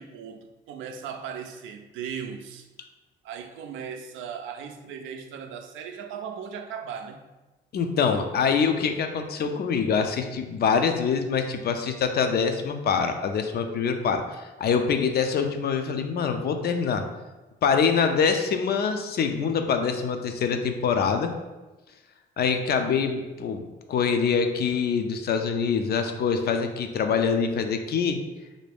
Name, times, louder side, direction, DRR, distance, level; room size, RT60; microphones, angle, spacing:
voice 1, 0.0-2.7 3.2-7.2, right 7 dB, 85° right, 6 dB, 0.4 m, -37 dB
voice 2, 7.7-17.0 17.6-21.3 22.4-28.2, left 6 dB, 55° left, 6 dB, 0.4 m, -25 dB
3.3 x 2.6 x 3.4 m, 1.1 s
cardioid pair, 90°, 20 cm